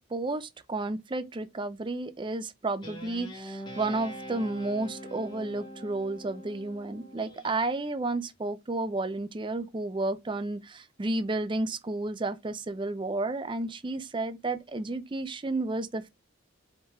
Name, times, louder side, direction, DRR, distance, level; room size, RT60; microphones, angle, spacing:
voice 1, 0.1-16.1, right 2 dB, 25° right, 0.4 m, -32 dB
Guitar, 2.8-7.6, equal, 20° left, 1.3 m, -43 dB
4.6 x 3.3 x 3.1 m
head